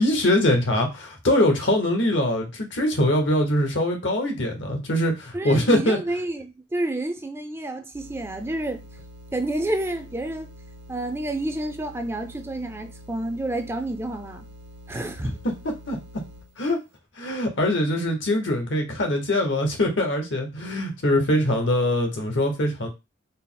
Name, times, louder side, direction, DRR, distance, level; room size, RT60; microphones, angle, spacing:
voice 1, 0.0-6.0 15.9-16.0 16.6-16.8 17.2-22.9, left 1 dB, 75° left, 1.0 m, -22 dB
voice 2, 5.3-8.8 9.3-10.5 10.9-14.4 14.9-15.4, right 1 dB, 15° right, 0.3 m, -29 dB
sound 1, 7.9-16.6, equal, 75° right, 0.5 m, -46 dB
4.1 x 2.0 x 3.8 m
head